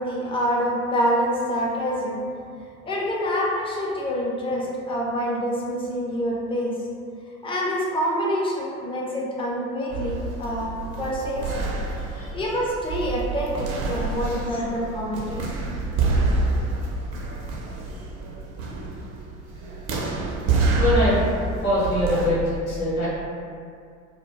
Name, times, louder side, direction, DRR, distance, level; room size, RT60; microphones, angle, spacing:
voice 1, 0.0-2.2 2.8-6.7 7.4-11.7 12.1-15.8, equal, 15° left, -3 dB, 0.4 m, -26 dB
sound 1, 9.9-22.3, right 3 dB, 55° right, 0.5 m, -27 dB
voice 2, 12.0-12.4 14.2-14.4 16.6-17.1 20.8-23.1, equal, 85° left, -8 dB, 0.8 m, -25 dB
2.1 x 2.1 x 3.1 m, 2.3 s
figure-of-eight pair, 60°, 41 cm